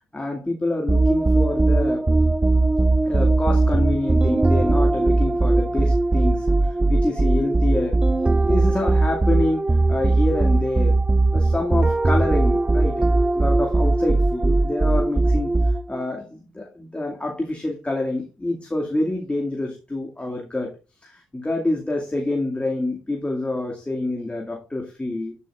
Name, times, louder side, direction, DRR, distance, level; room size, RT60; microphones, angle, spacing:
voice 1, 0.1-2.0 3.1-8.0 8.4-13.1 13.4-20.8 21.0-25.4, left 2 dB, 15° left, 1 dB, 2.1 m, -27 dB
sound 1, 0.9-16.0, right 2 dB, 15° right, 0.4 m, -19 dB
11.0 x 10.5 x 2.5 m, 0.31 s
hypercardioid pair, 45°, 7 cm